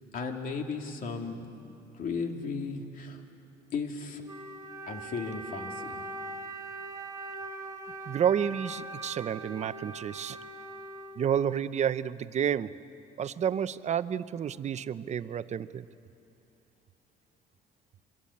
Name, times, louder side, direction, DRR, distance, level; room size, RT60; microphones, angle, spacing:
voice 1, 0.1-1.5 1.9-3.2 3.7-4.2 4.9-6.0, left 4 dB, 55° left, 3 dB, 2.9 m, -35 dB
Wind instrument woodwind instrument, 4.2-11.8, right 2 dB, 20° right, 1.7 m, -41 dB
voice 2, 8.1-10.4 11.2-12.7 13.2-15.8, right 8 dB, 40° right, 14 dB, 0.7 m, -30 dB
26.5 x 23.0 x 8.6 m, 2.7 s
cardioid pair, 110°, 17 cm